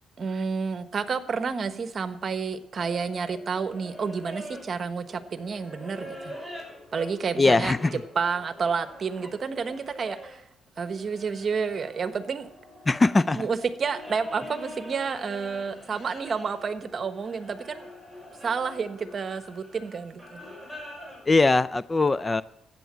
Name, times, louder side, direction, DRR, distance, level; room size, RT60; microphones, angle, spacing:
voice 1, 0.2-6.3 6.9-7.7 8.1-10.4 10.8-12.5 13.4-17.9 18.4-20.4, right 5 dB, 45° right, 11 dB, 1.2 m, -30 dB
sound 1, 2.8-10.4 10.7-21.3, equal, 5° left, 5.9 m, -44 dB
voice 2, 7.4-8.0 12.9-13.5 21.3-22.4, left 3 dB, 20° left, 17 dB, 0.4 m, -21 dB
13.5 x 9.2 x 7.4 m, 0.83 s
cardioid pair, 90°, 0 cm